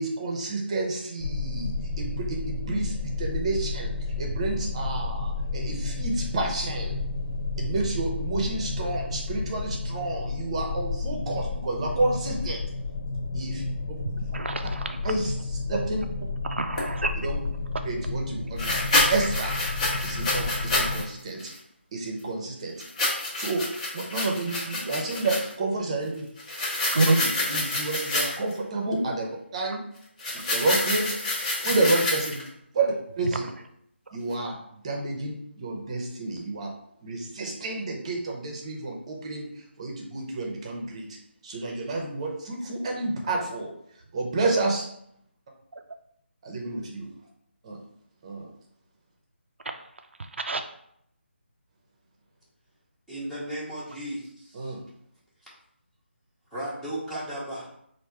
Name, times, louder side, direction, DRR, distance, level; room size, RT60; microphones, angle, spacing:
voice 1, 0.0-3.9 4.2-6.9 7.6-12.6 13.3-13.6 15.0-15.3 15.7-16.0 17.2-17.3 17.8-18.8 19.1-19.5 20.0-21.5 21.9-22.7 23.3-23.6 23.9-26.2 27.0-29.8 30.3-31.2 31.6-32.4 32.7-33.4 34.1-36.7 37.0-39.5 39.8-41.0 41.4-43.7 44.1-44.9 46.4-47.1 47.6-47.8 48.2-48.5 54.5-54.8, right 2 dB, 30° right, 1 dB, 0.8 m, -30 dB
sound 1, 1.2-21.0, left 3 dB, 55° left, 0.4 m, -31 dB
voice 2, 14.0-15.0 16.5-17.2 26.9-27.2 45.7-45.8 49.6-49.8 50.2-50.6, right 3 dB, 75° right, 6 dB, 0.4 m, -28 dB
sound 2, 16.8-16.9 18.6-21.0 21.4-21.6 22.8-25.5 26.4-28.5 30.2-32.5, left 2 dB, 35° left, 1.0 m, -28 dB
voice 3, 53.1-54.8 56.5-57.7, right 1 dB, ahead, -9 dB, 0.9 m, -35 dB
3.4 x 2.6 x 4.5 m, 0.72 s
figure-of-eight pair, 160°, 6 cm